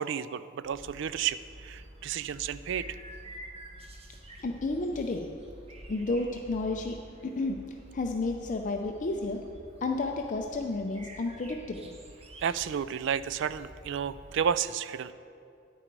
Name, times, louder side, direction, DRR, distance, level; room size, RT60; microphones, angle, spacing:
voice 1, 0.0-1.4 1.6-2.9 12.4-15.1, right 8 dB, 65° right, 15 dB, 0.3 m, -31 dB
sound 1, 0.6-14.5, equal, 30° right, 1.0 m, -49 dB
voice 2, 4.4-5.3 5.9-7.0 7.2-7.6 7.9-9.4 9.8-11.9, left 2 dB, 40° left, 3 dB, 0.5 m, -31 dB
9.8 x 9.3 x 4.6 m, 2.5 s
head